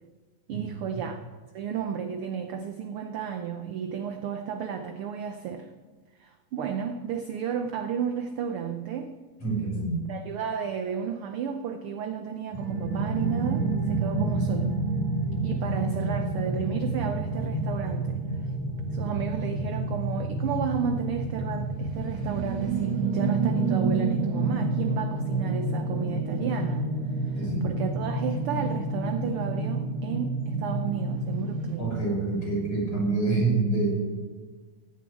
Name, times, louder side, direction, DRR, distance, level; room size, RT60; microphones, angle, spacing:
voice 1, 0.5-1.2 1.5-5.7 6.2-9.1 10.1-14.7 15.4-18.3 18.9-26.9 27.3-32.1, right 7 dB, 75° right, 6 dB, 1.3 m, -33 dB
voice 2, 9.4-10.1 14.2-14.3 27.4-27.7 31.8-33.9, right 3 dB, 45° left, -4 dB, 6.9 m, -27 dB
sound 1, 12.5-31.8, right 2 dB, 60° right, 2.8 m, -29 dB
15.5 x 7.2 x 9.3 m, 1.4 s
omnidirectional pair, 3.4 m